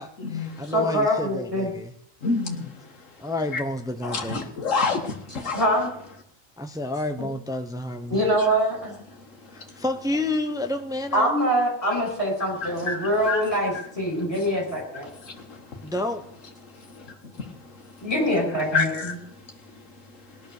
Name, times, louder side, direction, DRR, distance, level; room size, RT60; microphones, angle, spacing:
voice 1, 0.0-1.9 3.2-4.4 6.6-8.2 9.5-11.3 15.8-16.2, left 1 dB, 5° right, 6 dB, 1.0 m, -30 dB
voice 2, 0.7-1.7 5.5-5.9 8.1-8.9 11.1-15.1 18.0-19.2, equal, 25° left, -1 dB, 6.5 m, -24 dB
voice 3, 2.2-2.6 3.5-3.6 4.0-5.1 5.4-5.7 12.9-13.5 18.7-19.1, left 4 dB, 70° left, 2 dB, 2.1 m, -26 dB
18.0 x 11.0 x 6.8 m, 0.70 s
omnidirectional pair, 1.3 m